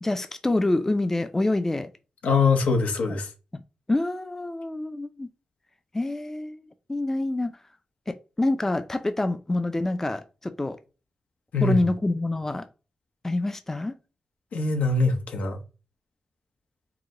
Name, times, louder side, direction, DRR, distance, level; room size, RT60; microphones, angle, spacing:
voice 1, 0.0-1.9 3.1-3.2 3.5-3.6 3.9-5.3 5.9-6.6 6.9-7.5 8.1-10.8 11.6-12.6 13.2-13.9, left 2 dB, 15° left, 0.4 m, -26 dB
voice 2, 2.2-3.3 11.5-11.8 14.5-15.6, left 4 dB, 90° left, 0.8 m, -23 dB
4.8 x 2.1 x 3.6 m
wide cardioid pair, 105°, 2 cm